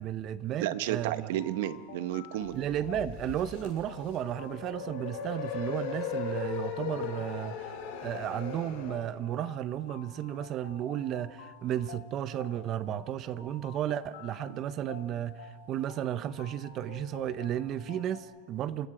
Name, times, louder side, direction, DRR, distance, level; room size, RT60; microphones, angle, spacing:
voice 1, 0.0-1.3 2.5-18.9, right 11 dB, 30° right, 15 dB, 0.6 m, -34 dB
sound 1, 0.6-18.2, left 8 dB, 80° left, 2.7 m, -50 dB
voice 2, 0.6-2.6 14.5-14.6, right 13 dB, 60° right, 12 dB, 1.0 m, -32 dB
sound 2, 2.4-9.0, left 7 dB, 55° left, 6.5 m, -38 dB
28.5 x 20.5 x 4.9 m, 1.4 s
supercardioid pair, 160°, 0 cm